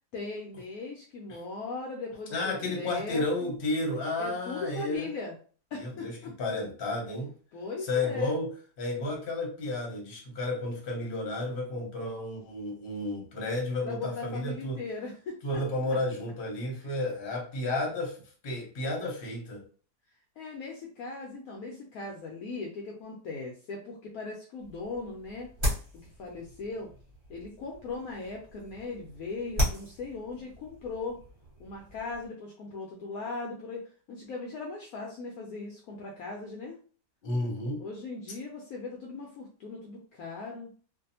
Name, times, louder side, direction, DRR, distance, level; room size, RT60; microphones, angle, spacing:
voice 1, 0.1-3.5 4.2-5.4 5.7-6.3 7.5-8.4 13.8-15.6 16.8-17.0 20.4-25.5 26.0-26.9 27.3-31.2 31.6-33.8 34.1-36.7 37.8-40.7, left 3 dB, 70° left, -1 dB, 0.9 m, -39 dB
voice 2, 2.3-5.1 5.8-7.3 7.8-8.5 8.8-14.8 15.4-19.6 37.2-37.9, left 2 dB, 40° left, -1 dB, 0.9 m, -32 dB
sound 1, 24.6-32.3, equal, 35° right, 1.1 m, -36 dB
2.6 x 2.4 x 2.7 m, 0.41 s
omnidirectional pair, 1.7 m